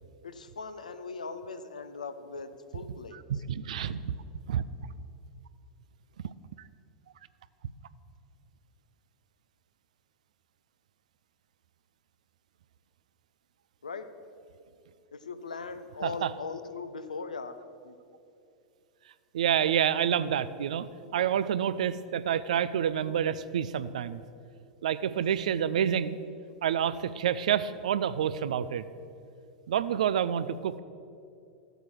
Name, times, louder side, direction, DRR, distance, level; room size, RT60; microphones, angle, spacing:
voice 1, 0.2-3.4 13.8-14.1 15.1-17.6 17.8-18.0 25.2-25.3, left 4 dB, 85° left, 10 dB, 0.7 m, -40 dB
voice 2, 3.3-4.2 4.5-4.6 16.0-16.3 19.3-20.9 21.1-24.2 24.8-26.2 26.6-28.8 29.7-30.8, right 9 dB, 70° right, 15 dB, 0.5 m, -28 dB
13.5 x 8.1 x 6.0 m, 2.6 s
figure-of-eight pair, 95°, 4 cm